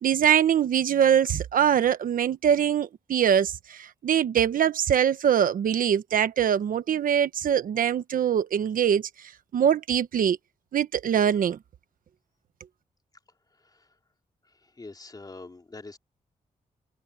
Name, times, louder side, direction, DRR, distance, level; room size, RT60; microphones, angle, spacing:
voice 1, 0.0-10.4 10.7-11.6, right 9 dB, 75° right, 1.2 m, -23 dB
voice 2, 13.6-13.9 14.5-16.0, left 3 dB, 25° left, 3.5 m, -44 dB
cardioid pair, 85°, 14 cm